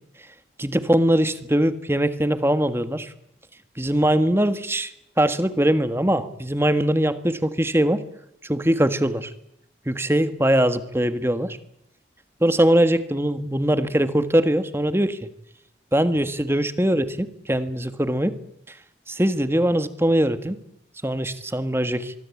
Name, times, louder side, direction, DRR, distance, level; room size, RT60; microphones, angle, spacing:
voice 1, 0.6-3.1 3.8-4.9 5.2-8.0 8.5-9.3 9.9-11.6 12.4-15.2 15.9-18.3 19.1-20.6 21.0-22.1, right 1 dB, 15° right, 10 dB, 1.6 m, -21 dB
25.0 x 23.5 x 8.5 m, 0.76 s
head